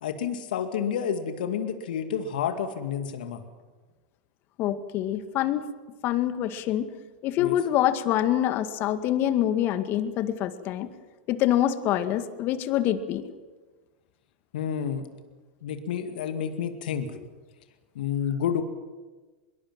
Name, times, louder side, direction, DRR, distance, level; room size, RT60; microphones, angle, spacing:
voice 1, 0.0-3.4 7.4-7.6 14.5-15.1 15.6-17.1 18.0-18.6, left 8 dB, 70° left, 7 dB, 2.3 m, -29 dB
voice 2, 4.6-5.7 6.0-6.9 7.2-10.9 11.3-13.3, left 12 dB, 45° left, 10 dB, 2.0 m, -25 dB
24.5 x 22.5 x 7.6 m, 1.3 s
hypercardioid pair, 100°, 5 cm